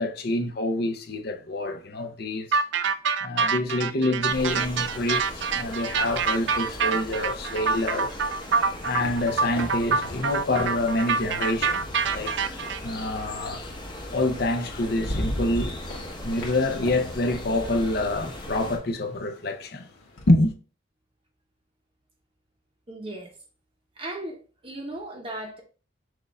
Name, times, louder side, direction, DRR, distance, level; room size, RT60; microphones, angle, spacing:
voice 1, 0.0-2.6 3.2-8.2 8.8-12.5 12.8-13.6 14.1-15.8 16.2-19.9 20.3-20.5, left 2 dB, 50° left, 0.7 m, -27 dB
sound 1, 2.5-12.8, right 5 dB, 65° right, 0.4 m, -26 dB
sound 2, 4.3-18.8, left 1 dB, 20° left, 0.8 m, -39 dB
sound 3, 8.4-12.9 14.2-14.3 14.7-20.3, left 1 dB, 85° left, 1.3 m, -38 dB
voice 2, 22.9-23.3 24.0-24.4 24.6-25.6, right 1 dB, 25° right, 0.9 m, -36 dB
6.2 x 2.5 x 3.4 m
head